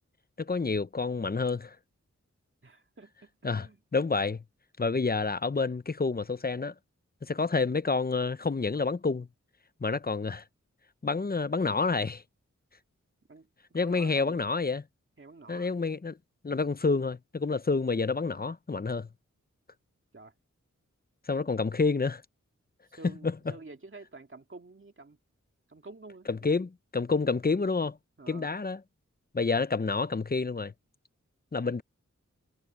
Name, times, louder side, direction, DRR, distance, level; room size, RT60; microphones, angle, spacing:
voice 1, 0.4-1.8 3.4-3.7 3.9-4.4 4.8-6.7 7.2-9.3 9.8-10.4 11.0-12.2 13.7-14.8 15.5-16.1 16.4-19.1 21.3-22.2 26.3-26.7 26.9-28.0 28.3-28.8 29.3-30.7 31.5-31.8, left 4 dB, 30° left, 0.7 m, -28 dB
voice 2, 2.6-3.8 13.3-14.4 15.2-15.8 20.1-20.3 22.9-25.2 25.7-26.6 28.2-28.5, right 3 dB, 45° right, 2.3 m, -49 dB
wide cardioid pair, 80°, 29 cm